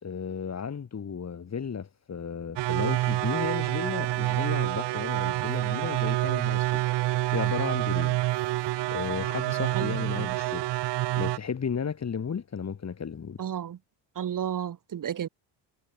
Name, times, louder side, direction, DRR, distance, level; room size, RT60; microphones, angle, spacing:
voice 1, 0.0-6.9 7.3-8.2 8.9-10.7 11.2-13.4, left 6 dB, 35° left, 1.6 m, -34 dB
sound 1, 2.6-11.4, right 17 dB, 60° right, 0.7 m, -27 dB
sound 2, 5.1-13.3, right 3 dB, 25° right, 7.5 m, -64 dB
voice 2, 9.7-10.4 13.4-13.8 14.1-15.3, right 9 dB, 45° right, 1.1 m, -33 dB
supercardioid pair, 65°, 46 cm